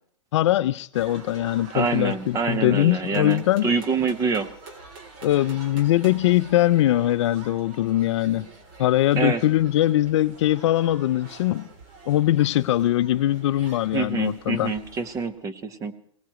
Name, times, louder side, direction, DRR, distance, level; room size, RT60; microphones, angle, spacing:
voice 1, 0.3-3.7 5.2-8.5 8.8-11.7 12.1-14.8, left 14 dB, 60° left, 0.5 m, -21 dB
sound 1, 0.9-15.3, right 3 dB, 50° right, 3.2 m, -46 dB
voice 2, 1.7-4.5 9.1-9.4 13.9-15.9, right 5 dB, 20° right, 1.0 m, -26 dB
24.0 x 18.5 x 3.1 m
hypercardioid pair, 140°, 17 cm